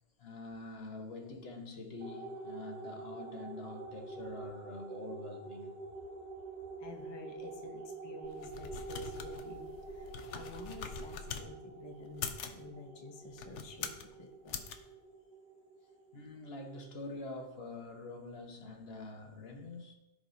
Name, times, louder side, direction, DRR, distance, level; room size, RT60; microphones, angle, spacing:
voice 1, 0.2-5.8 16.1-19.9, left 2 dB, 60° left, 1.3 m, -45 dB
sound 1, 2.0-16.8, right 3 dB, 35° right, 1.8 m, -47 dB
voice 2, 6.8-14.7, left 2 dB, 30° left, 0.7 m, -50 dB
sound 2, 8.2-11.5 12.1-12.6 13.3-14.1 14.5-14.8, left 7 dB, 90° left, 1.0 m, -43 dB
14.5 x 4.9 x 2.7 m
omnidirectional pair, 1.2 m